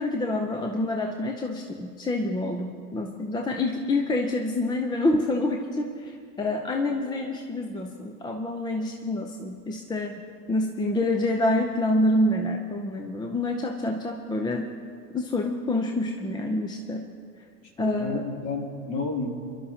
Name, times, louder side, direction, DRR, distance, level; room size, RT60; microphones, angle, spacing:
voice 1, 0.0-10.2 10.5-14.7 15.1-17.1 17.8-18.2, left 1 dB, 10° left, 3 dB, 0.6 m, -27 dB
voice 2, 17.6-19.3, left 4 dB, 40° left, -1 dB, 3.2 m, -31 dB
28.5 x 11.5 x 2.8 m, 2.1 s
hypercardioid pair, 100°, 47 cm